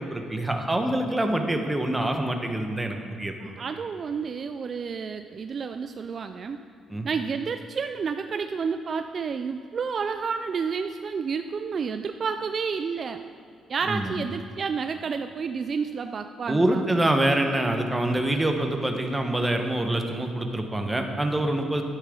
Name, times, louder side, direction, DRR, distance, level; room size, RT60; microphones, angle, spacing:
voice 1, 0.0-3.3 6.9-7.1 13.9-14.1 16.5-21.8, right 1 dB, 15° right, 4 dB, 1.2 m, -25 dB
voice 2, 3.4-6.6 7.0-13.2 13.7-16.8, right 5 dB, 50° right, 8 dB, 0.4 m, -30 dB
11.0 x 9.7 x 3.9 m, 2.4 s
cardioid pair, 90°, 0 cm